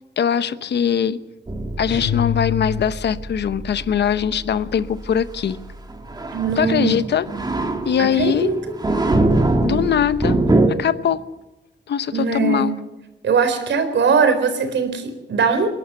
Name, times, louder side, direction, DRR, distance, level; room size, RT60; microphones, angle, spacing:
voice 1, 0.2-1.2 1.8-5.6 6.6-7.3 7.8-8.5 9.6-10.4 10.7-11.2 11.9-12.7, left 8 dB, 65° left, 13 dB, 1.0 m, -21 dB
sound 1, 1.5-10.7, right 2 dB, 20° right, 2.0 m, -23 dB
sound 2, 1.9-3.3, left 10 dB, 85° left, 3.1 m, -26 dB
voice 2, 6.3-7.0 7.3-7.4 8.0-8.5 12.1-12.7 13.2-15.7, right 5 dB, 75° right, 7 dB, 4.1 m, -20 dB
28.0 x 11.5 x 8.1 m, 1.0 s
wide cardioid pair, 170°, 19 cm